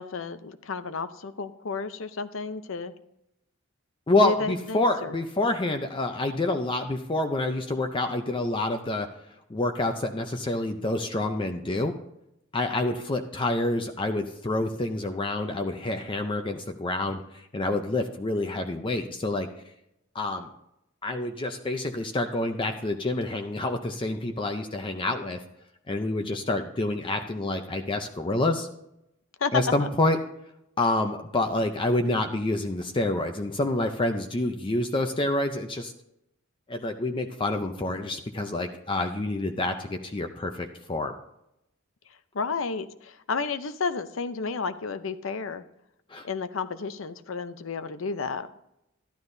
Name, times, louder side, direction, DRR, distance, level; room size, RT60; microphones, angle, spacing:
voice 1, 0.0-2.9 4.2-5.2 29.4-29.9 42.3-45.6 46.2-48.5, left 4 dB, 70° left, 12 dB, 0.6 m, -31 dB
voice 2, 4.1-9.1 9.5-11.9 12.5-19.5 20.1-20.5 21.0-25.4 25.9-28.7 29.5-30.2 30.8-35.9 36.7-41.1 46.1-46.3, left 2 dB, 25° left, 5 dB, 0.6 m, -27 dB
12.5 x 11.5 x 2.7 m, 0.82 s
head